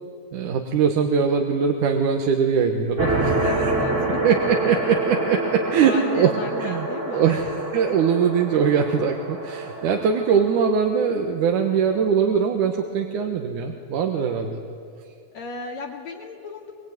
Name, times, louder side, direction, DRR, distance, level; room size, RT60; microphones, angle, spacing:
voice 1, 0.3-3.7 4.2-14.6, right 6 dB, 80° right, 3 dB, 2.8 m, -22 dB
sound 1, 3.0-10.6, right 2 dB, 25° right, 2.9 m, -27 dB
voice 2, 3.4-4.2 5.7-7.5 14.1-14.4 15.3-16.7, left 5 dB, 65° left, -4 dB, 3.1 m, -35 dB
23.5 x 23.5 x 9.4 m, 2.3 s
omnidirectional pair, 3.6 m